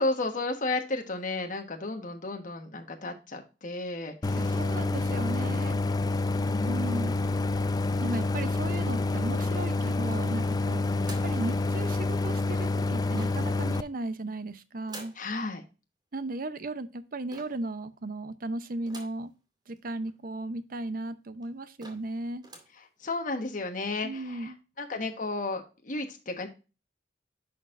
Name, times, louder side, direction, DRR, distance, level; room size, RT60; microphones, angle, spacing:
voice 1, 0.0-4.5 6.5-7.3 10.9-11.2 15.2-15.6 23.0-26.5, left 2 dB, 50° left, 4 dB, 1.2 m, -33 dB
Idling, 4.2-13.8, left 2 dB, 20° left, 0.4 m, -28 dB
voice 2, 4.3-5.8 6.6-7.1 7.9-10.8 11.2-15.1 16.1-19.3 19.7-22.4 24.0-24.6, right 2 dB, 55° right, 12 dB, 0.7 m, -36 dB
sound 1, 9.4-10.1 11.0-11.4 13.1-13.6 14.9-15.3 17.3-17.7 18.9-19.3 19.8-19.9 20.1-20.2 20.9-21.0 21.4-21.5 21.8-22.1 22.4-22.8, right 2 dB, 25° right, 2.3 m, -48 dB
11.0 x 4.4 x 2.5 m, 0.30 s
head